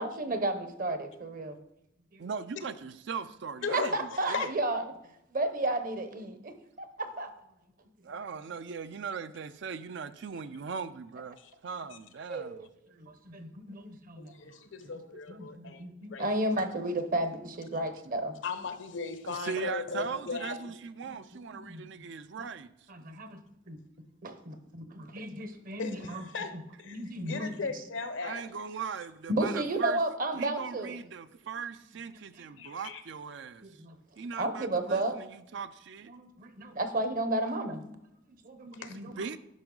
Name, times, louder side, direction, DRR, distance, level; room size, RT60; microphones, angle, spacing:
voice 1, 0.0-1.6 2.1-2.3 3.7-4.8 5.3-7.3 12.3-12.6 12.9-14.3 15.3-18.3 21.5-21.8 22.9-23.4 23.7-23.8 24.2-26.2 26.5-26.6 26.9-27.7 29.3-31.0 32.3-32.4 33.6-33.9 34.4-35.2 36.1-38.0 38.4-39.2, right 1 dB, 45° right, 0.9 m, -33 dB
voice 2, 2.2-4.5 8.0-11.4 11.6-12.7 15.3-15.4 17.4-17.5 19.2-22.7 28.2-30.0 30.4-33.8 34.2-36.1 39.0-39.4, right 5 dB, 65° right, 0.5 m, -39 dB
voice 3, 3.6-3.9 4.3-4.5 11.4-11.5 14.2-15.8 16.1-16.6 18.4-20.7 25.8-28.4 32.6-33.0 38.8-39.0, left 4 dB, 80° left, 0.9 m, -37 dB
10.5 x 5.3 x 3.9 m
head